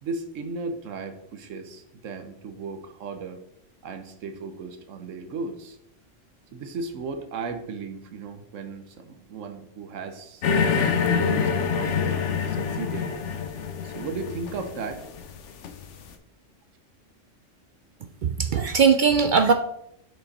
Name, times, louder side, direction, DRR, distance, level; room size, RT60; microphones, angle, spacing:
voice 1, 0.0-3.4 3.8-5.8 6.5-13.1 13.8-15.0, right 4 dB, 85° right, 7 dB, 1.2 m, -36 dB
sound 1, 10.4-16.0, left 6 dB, 75° left, 1.0 m, -26 dB
voice 2, 18.2-19.5, right 6 dB, 65° right, 7 dB, 0.5 m, -19 dB
6.0 x 5.4 x 4.1 m, 0.76 s
omnidirectional pair, 1.3 m